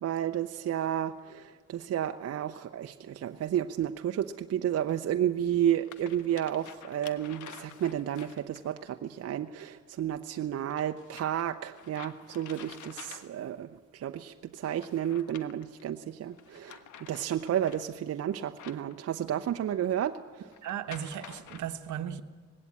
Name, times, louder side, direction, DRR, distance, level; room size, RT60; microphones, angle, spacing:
voice 1, 0.0-20.2, right 10 dB, 55° right, 0.7 m, -32 dB
sound 1, 3.2-3.3 4.9-5.0 5.6-8.8 10.7-13.6 14.6-15.8 16.3-19.5 20.5-21.6, left 9 dB, 80° left, 1.2 m, -50 dB
voice 2, 20.6-22.2, right 10 dB, 75° right, 1.1 m, -36 dB
19.5 x 16.5 x 8.6 m
cardioid pair, 90°, 30 cm